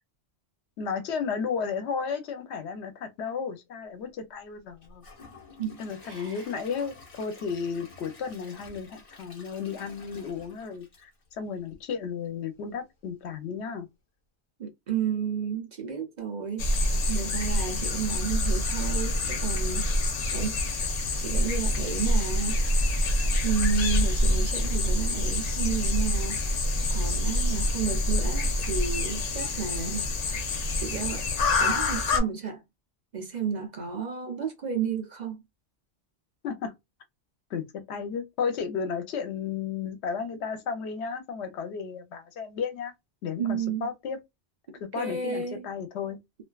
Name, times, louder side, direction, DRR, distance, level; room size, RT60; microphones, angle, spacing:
voice 1, 0.8-5.0 5.8-11.1 11.4-13.9 36.4-36.7 37.5-42.9 43.2-44.2 44.8-46.2, left 6 dB, 85° left, 0.9 m, -33 dB
Gurgling / Toilet flush / Trickle dribble, 4.8-11.8 12.2-12.3 12.8-12.9, left 3 dB, 35° left, 1.0 m, -51 dB
voice 2, 5.6-6.4 14.6-19.9 20.3-20.6 21.1-22.6 23.4-26.6 26.9-30.1 30.8-31.2 31.6-32.6 33.1-35.4 43.4-43.9 44.9-45.7, right 6 dB, 50° right, 0.6 m, -32 dB
sound 1, 16.6-32.2, left 1 dB, 50° left, 0.5 m, -26 dB
2.4 x 2.2 x 2.2 m
omnidirectional pair, 1.1 m